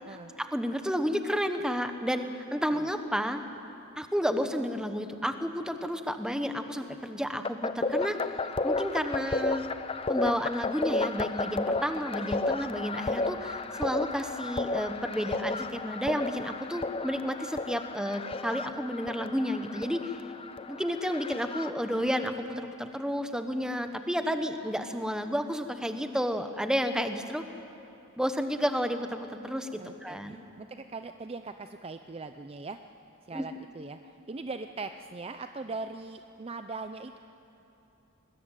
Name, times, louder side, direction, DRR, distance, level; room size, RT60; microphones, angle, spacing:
voice 1, 0.4-3.4 4.0-8.2 8.6-9.6 10.1-20.2 20.7-27.4 28.2-30.4 33.3-33.5, equal, 5° right, 7 dB, 1.0 m, -31 dB
sound 1, 7.4-22.3, left 3 dB, 25° left, 0.6 m, -33 dB
voice 2, 29.8-32.8 33.3-37.2, right 3 dB, 25° right, 8 dB, 0.5 m, -40 dB
20.5 x 20.0 x 9.1 m, 2.9 s
head